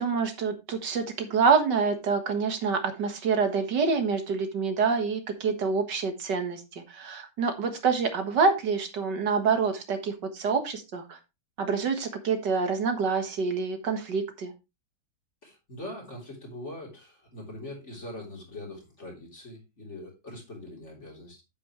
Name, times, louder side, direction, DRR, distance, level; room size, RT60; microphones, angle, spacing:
voice 1, 0.0-11.2 11.6-14.5, right 5 dB, 70° right, 6 dB, 2.1 m, -27 dB
voice 2, 15.4-21.4, left 1 dB, 40° left, -1 dB, 3.9 m, -42 dB
8.7 x 8.6 x 3.1 m, 0.25 s
omnidirectional pair, 1.9 m